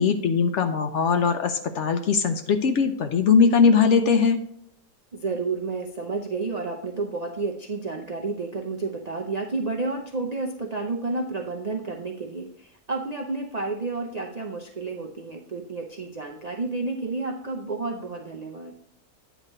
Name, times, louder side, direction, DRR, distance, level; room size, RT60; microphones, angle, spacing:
voice 1, 0.0-4.4, left 5 dB, 60° left, 7 dB, 0.8 m, -20 dB
voice 2, 5.1-18.7, right 3 dB, 70° right, 0 dB, 0.3 m, -31 dB
9.1 x 3.1 x 6.5 m, 0.69 s
omnidirectional pair, 1.6 m